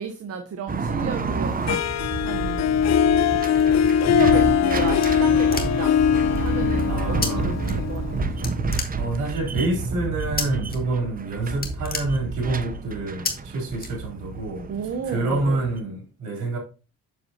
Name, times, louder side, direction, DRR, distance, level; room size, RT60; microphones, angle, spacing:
voice 1, 0.0-1.7 2.2-2.8 3.6-6.0 6.4-8.2 14.7-15.6, right 6 dB, 50° right, 1.0 m, -33 dB
sound 1, 0.7-15.8, right 3 dB, 30° right, 0.8 m, -30 dB
Harp, 1.7-8.6, left 8 dB, 60° left, 0.6 m, -21 dB
sound 2, 5.0-6.0 7.2-7.3 7.6-8.2 8.4-9.4 10.4-10.8 11.1-11.2 11.5-12.7 13.2-13.3 13.8-14.4, left 4 dB, 30° left, 1.9 m, -31 dB
voice 2, 6.9-7.5 8.4-8.5 8.9-16.6, right 2 dB, 75° right, 3.6 m, -27 dB
7.6 x 6.8 x 2.8 m
cardioid pair, 90°, 30 cm